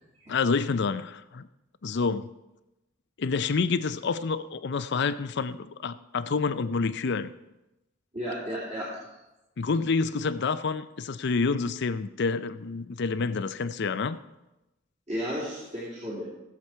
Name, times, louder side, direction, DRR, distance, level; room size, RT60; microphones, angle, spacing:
voice 1, 0.3-1.5 1.8-2.3 3.2-7.3 9.6-14.2, left 4 dB, 60° left, 13 dB, 0.5 m, -28 dB
voice 2, 8.1-9.1 15.1-16.2, equal, 35° right, -8 dB, 3.0 m, -33 dB
17.5 x 7.1 x 4.6 m, 0.97 s
head